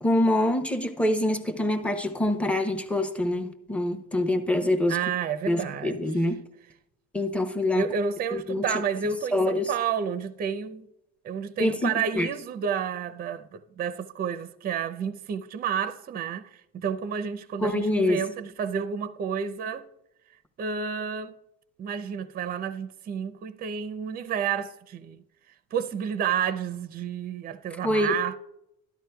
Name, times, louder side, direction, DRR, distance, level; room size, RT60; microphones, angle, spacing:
voice 1, 0.0-5.0 5.5-6.4 7.1-7.8 8.3-8.6 9.3-9.7 11.6-12.3 17.6-18.2 27.8-28.1, left 1 dB, 5° left, 0.8 m, -25 dB
voice 2, 4.9-6.0 7.7-10.9 11.2-19.8 20.6-21.3 21.8-25.2 25.7-28.4, right 7 dB, 30° right, 0.5 m, -30 dB
13.0 x 11.0 x 2.3 m
cardioid pair, 115°, 31 cm